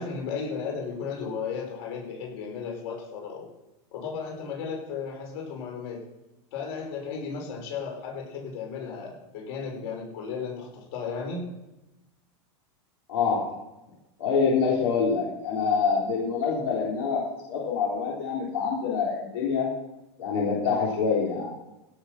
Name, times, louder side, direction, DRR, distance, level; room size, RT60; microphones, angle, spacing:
voice 1, 0.0-3.4 3.9-6.0 6.5-11.4, left 5 dB, 55° left, 0 dB, 5.6 m, -34 dB
voice 2, 13.1-13.5 14.2-17.2 17.5-19.7 20.2-21.5, left 5 dB, 85° left, -4 dB, 3.8 m, -26 dB
16.5 x 7.2 x 6.0 m, 0.95 s
supercardioid pair, 155°, 14 cm